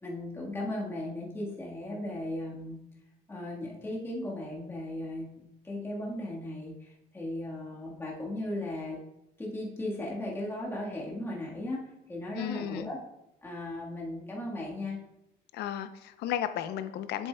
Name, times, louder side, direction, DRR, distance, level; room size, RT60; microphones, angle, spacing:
voice 1, 0.0-2.8 3.3-9.0 9.4-11.8 12.1-13.0 13.4-15.0, left 1 dB, 15° left, -4 dB, 1.4 m, -36 dB
voice 2, 12.3-12.9 15.5-17.3, left 10 dB, 75° left, 11 dB, 0.5 m, -34 dB
7.7 x 7.5 x 2.2 m, 0.87 s
cardioid pair, 110°, 17 cm